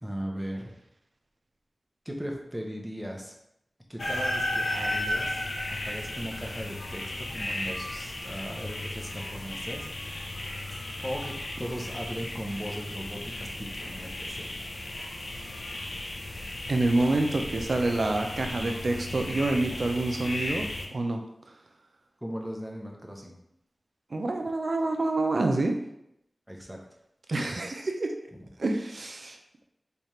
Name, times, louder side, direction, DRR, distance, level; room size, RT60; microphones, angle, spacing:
voice 1, 0.0-0.8 2.0-3.3 3.9-9.9 11.0-14.5 22.2-23.4 26.5-26.8 28.4-28.5, equal, 10° right, 0 dB, 0.7 m, -38 dB
sound 1, 4.0-20.9, left 1 dB, 85° left, 0.6 m, -35 dB
voice 2, 16.7-20.6 20.9-21.2 24.1-25.8 27.3-28.1 28.6-29.4, right 2 dB, 65° right, 4 dB, 0.5 m, -27 dB
3.3 x 2.4 x 4.2 m, 0.80 s
wide cardioid pair, 70°, 0 cm